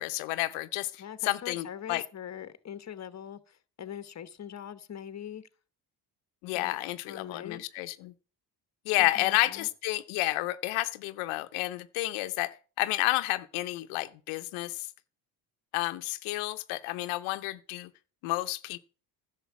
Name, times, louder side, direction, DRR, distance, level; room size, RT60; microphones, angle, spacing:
voice 1, 0.0-2.0 6.4-8.1 8.9-14.9 15.7-17.9 18.2-18.8, left 18 dB, 90° left, 0.7 m, -31 dB
voice 2, 1.0-5.5 6.5-6.8 7.1-7.6 9.0-9.7, left 9 dB, 35° left, 1.1 m, -42 dB
11.0 x 6.7 x 7.2 m
supercardioid pair, 85°, 47 cm